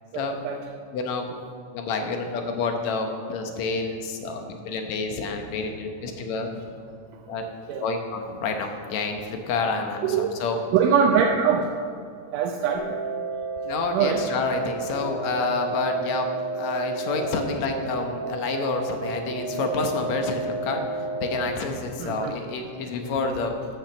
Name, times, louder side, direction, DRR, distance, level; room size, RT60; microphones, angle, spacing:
voice 1, 0.1-0.6 7.7-7.8 10.0-10.3 10.7-11.7 12.3-13.0 13.9-14.2 22.0-22.4, right 7 dB, 85° right, 2 dB, 2.2 m, -22 dB
voice 2, 0.9-1.3 1.7-6.5 7.3-7.5 7.8-10.6 13.6-16.3 16.6-23.8, left 3 dB, 65° left, 4 dB, 2.2 m, -28 dB
sound 1, 12.7-21.5, right 2 dB, 10° left, 0.6 m, -31 dB
11.5 x 6.4 x 7.4 m, 2.3 s
omnidirectional pair, 3.7 m